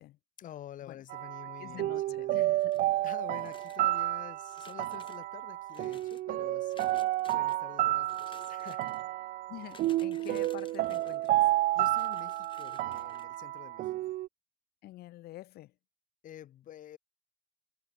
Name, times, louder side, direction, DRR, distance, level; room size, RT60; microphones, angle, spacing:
voice 1, 0.4-2.3 3.0-6.8 7.3-9.0 11.7-14.1 16.2-17.0, left 11 dB, 55° left, 6.2 m, -49 dB
sound 1, 1.1-14.3, right 16 dB, 60° right, 0.5 m, -31 dB
voice 2, 1.6-3.0 9.5-11.4 14.8-15.8, left 16 dB, 75° left, 4.3 m, -47 dB
sound 2, 2.6-3.0 3.4-4.0 4.5-5.2 5.7-6.2 6.7-7.6 8.0-9.0 9.6-11.3 11.8-13.3, left 6 dB, 30° left, 4.3 m, -56 dB
cardioid pair, 150°, 16 cm